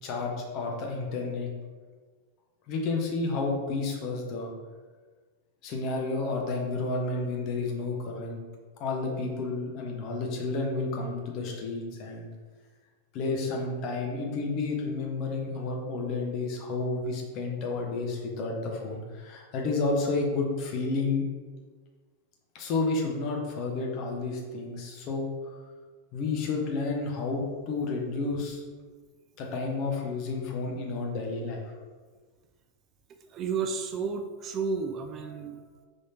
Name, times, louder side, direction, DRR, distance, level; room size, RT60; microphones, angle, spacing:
voice 1, 0.0-1.5 2.7-4.5 5.6-8.4 8.8-12.3 13.1-21.3 22.5-25.3 26.1-28.6 29.4-31.6, left 3 dB, 40° left, 0 dB, 0.9 m, -31 dB
voice 2, 33.2-35.9, right 5 dB, 30° right, 6 dB, 0.4 m, -32 dB
5.7 x 3.2 x 2.8 m, 1.5 s
figure-of-eight pair, 90°, 0 cm